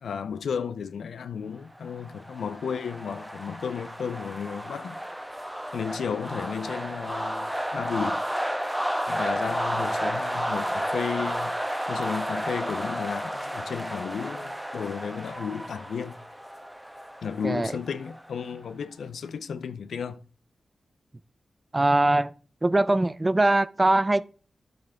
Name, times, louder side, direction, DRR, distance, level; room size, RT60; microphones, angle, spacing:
voice 1, 0.0-5.0 5.7-8.3 9.1-11.6 11.9-16.2 17.2-20.2, left 6 dB, 85° left, 0.6 m, -33 dB
sound 1, 1.9-18.5, equal, 5° right, 1.2 m, -32 dB
voice 2, 17.4-17.8 21.7-22.3 22.6-24.3, right 2 dB, 30° right, 0.6 m, -22 dB
11.5 x 7.7 x 3.6 m
cardioid pair, 40°, 0 cm